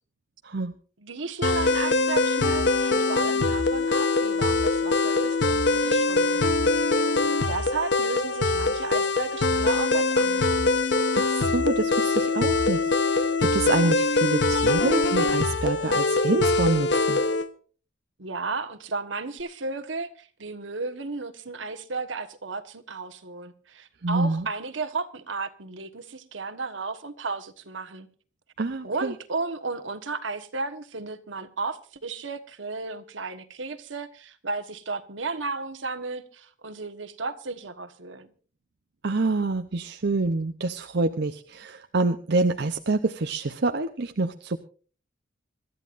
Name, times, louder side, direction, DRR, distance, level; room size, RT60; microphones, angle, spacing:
voice 1, 0.4-0.7 11.1-17.2 24.0-24.5 28.6-29.1 39.0-44.6, right 3 dB, 60° right, 0.7 m, -27 dB
voice 2, 1.0-6.7 7.5-10.6 18.2-28.1 28.8-38.3, right 4 dB, 75° right, 1.4 m, -34 dB
sound 1, 1.4-17.5, left 3 dB, 60° left, 0.9 m, -23 dB
26.0 x 13.0 x 2.6 m
head